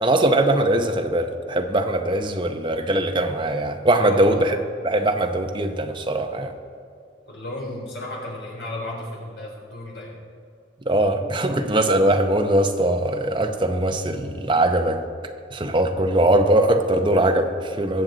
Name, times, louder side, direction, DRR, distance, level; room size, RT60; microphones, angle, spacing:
voice 1, 0.0-4.6 4.8-6.5 10.9-15.0 15.5-18.0, right 1 dB, 25° right, 5 dB, 0.8 m, -21 dB
voice 2, 4.0-4.4 7.3-10.2, left 1 dB, 70° left, -3 dB, 3.7 m, -33 dB
21.0 x 7.7 x 4.0 m, 2.3 s
head